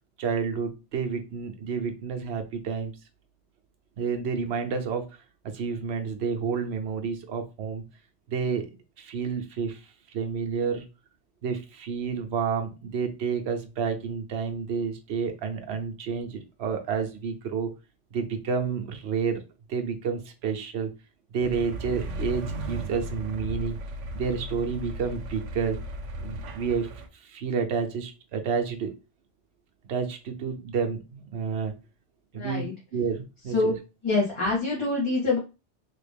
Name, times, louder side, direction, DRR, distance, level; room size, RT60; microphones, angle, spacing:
voice 1, 0.2-3.0 4.0-5.1 5.5-7.8 8.3-8.7 9.0-10.8 11.4-17.7 18.1-19.4 19.7-20.9 21.3-23.8 24.1-25.8 26.2-26.9 27.2-28.9 29.9-31.7 32.3-32.7 32.9-33.7, right 6 dB, 65° right, 5 dB, 0.9 m, -30 dB
sound 1, 21.4-27.1, right 1 dB, 85° right, 1.0 m, -36 dB
voice 2, 32.3-32.7 33.5-33.7 34.0-35.4, left 3 dB, 30° left, -4 dB, 0.8 m, -25 dB
3.3 x 2.4 x 3.4 m, 0.29 s
omnidirectional pair, 1.2 m